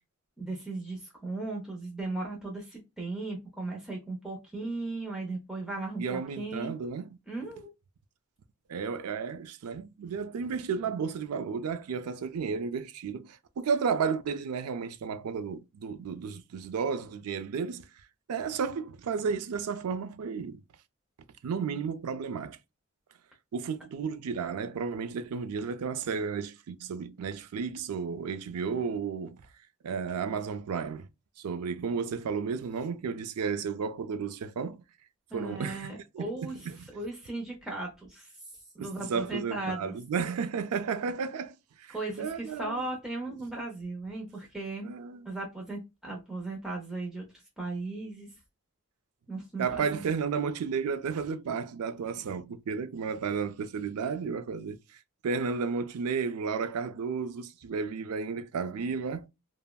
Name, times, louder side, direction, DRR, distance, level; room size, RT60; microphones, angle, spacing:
voice 1, 0.4-6.7 7.3-7.6 35.3-38.3 38.7-39.9 41.9-44.9 45.2-47.2 47.6-48.3 49.3-50.0, right 2 dB, ahead, 0.6 m, -37 dB
voice 2, 6.0-7.1 8.7-17.9 18.3-20.6 21.4-22.6 23.5-29.4 29.8-31.1 31.4-34.8 35.3-36.9 38.8-42.9 44.8-45.3 49.6-54.8 55.2-59.3, right 5 dB, 85° right, 0.4 m, -33 dB
3.4 x 2.0 x 2.2 m
head